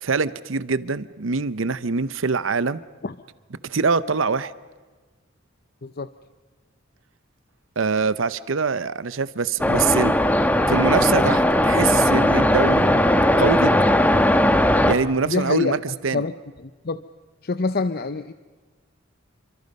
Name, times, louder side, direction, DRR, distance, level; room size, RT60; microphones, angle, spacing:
voice 1, 0.0-2.8 3.6-4.5 7.8-10.1 10.7-12.9 13.4-13.8 14.9-16.2, right 5 dB, 75° right, 16 dB, 0.8 m, -24 dB
sound 1, 9.6-14.9, left 1 dB, 10° left, 1.3 m, -18 dB
voice 2, 15.2-15.7 16.1-16.3 16.6-17.0 17.4-18.3, left 4 dB, 50° left, 12 dB, 0.7 m, -25 dB
29.5 x 25.0 x 5.4 m, 1.4 s
head